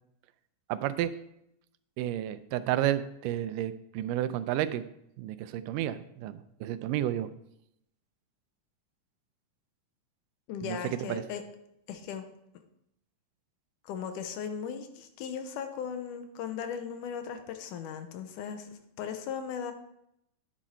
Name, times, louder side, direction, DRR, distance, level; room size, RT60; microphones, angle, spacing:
voice 1, 0.7-1.1 2.0-4.8 5.2-7.3 10.6-11.2, right 12 dB, 85° right, 13 dB, 2.2 m, -31 dB
voice 2, 10.5-11.4 11.9-12.3 13.8-19.7, left 7 dB, 80° left, 8 dB, 2.3 m, -37 dB
9.9 x 7.4 x 4.2 m, 0.79 s
omnidirectional pair, 3.7 m